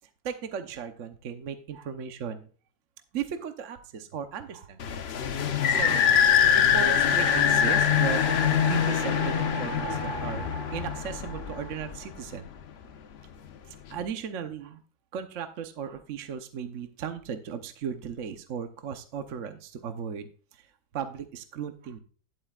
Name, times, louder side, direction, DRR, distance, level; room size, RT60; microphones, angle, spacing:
voice 1, 0.2-2.4 3.1-4.8 5.7-6.1 6.5-8.2 8.6-10.5 10.7-12.5 13.9-14.8 15.1-20.3 20.9-22.0, right 7 dB, 55° right, 8 dB, 1.0 m, -36 dB
sound 1, 4.8-12.1, left 8 dB, 65° left, 0.6 m, -24 dB
sound 2, 5.7-12.1, right 7 dB, 85° right, 1.8 m, -38 dB
12.0 x 7.8 x 2.4 m, 0.40 s
omnidirectional pair, 2.1 m